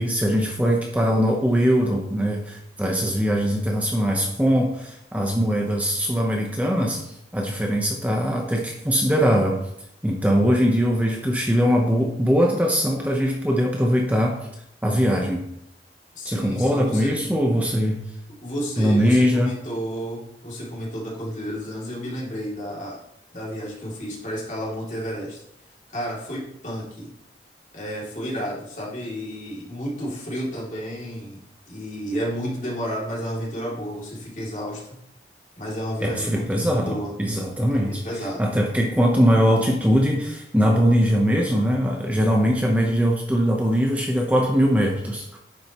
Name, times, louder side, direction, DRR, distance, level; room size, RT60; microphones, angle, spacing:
voice 1, 0.0-7.0 7.3-9.6 10.0-14.4 14.8-15.4 16.2-18.0 18.8-19.6 36.0-38.0 38.4-45.4, equal, 10° right, 0 dB, 0.8 m, -21 dB
voice 2, 16.1-17.1 18.4-23.0 23.3-25.4 25.9-27.1 27.7-35.0 35.6-37.1 37.7-38.5, equal, 45° left, -4 dB, 2.7 m, -31 dB
9.9 x 7.5 x 3.0 m, 0.78 s
head